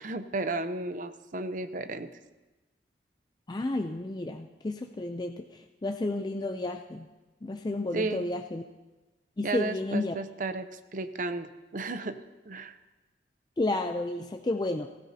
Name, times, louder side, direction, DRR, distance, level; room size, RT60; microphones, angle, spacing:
voice 1, 0.0-2.1 7.9-8.3 9.4-12.7, right 3 dB, 45° right, 10 dB, 0.6 m, -34 dB
voice 2, 3.5-7.1 7.4-8.6 9.4-10.1 13.6-14.9, left 2 dB, 20° left, 5 dB, 0.4 m, -31 dB
17.0 x 15.5 x 2.8 m, 1.1 s
head